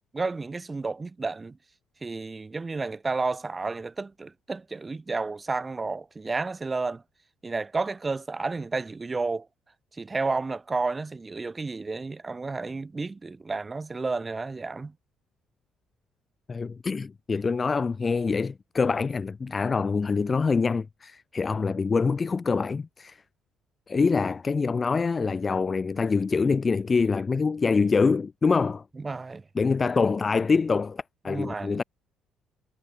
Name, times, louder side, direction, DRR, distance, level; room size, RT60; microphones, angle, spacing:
voice 1, 0.1-1.6 2.0-7.0 7.4-9.5 10.0-14.9 29.0-29.4 31.3-31.8, right 3 dB, 20° right, 3.9 m, -31 dB
voice 2, 16.5-23.2 23.9-28.8 29.5-31.8, left 4 dB, 30° left, 3.3 m, -25 dB
cardioid pair, 105°, 0 cm